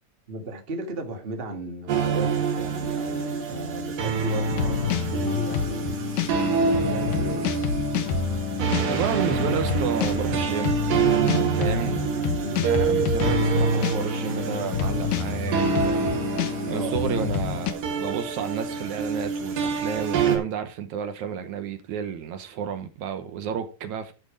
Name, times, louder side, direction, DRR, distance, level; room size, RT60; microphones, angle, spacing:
voice 1, 0.3-6.0 6.6-7.5 11.2-11.5 12.4-12.7 16.7-17.0, right 2 dB, 35° right, 0.9 m, -35 dB
sound 1, 1.9-20.4, right 5 dB, 85° right, 3.5 m, -27 dB
sound 2, 4.3-17.7, left 7 dB, 70° left, 2.4 m, -28 dB
voice 2, 8.9-10.8 11.5-12.0 12.6-16.2 16.7-24.1, right 8 dB, 70° right, 2.2 m, -31 dB
12.0 x 5.2 x 4.9 m
omnidirectional pair, 3.8 m